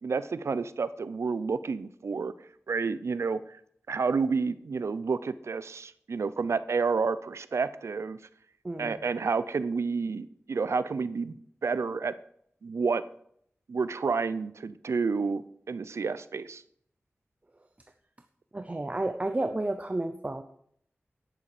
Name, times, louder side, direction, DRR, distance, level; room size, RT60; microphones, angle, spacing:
voice 1, 0.0-2.3 2.7-3.4 3.9-8.2 8.8-12.1 12.6-13.0 13.7-15.4 15.7-16.6, right 4 dB, 85° right, 15 dB, 0.6 m, -30 dB
voice 2, 8.6-9.0 18.5-20.4, right 2 dB, 30° right, 7 dB, 0.7 m, -31 dB
11.0 x 10.0 x 5.0 m, 0.68 s
wide cardioid pair, 65°, 5 cm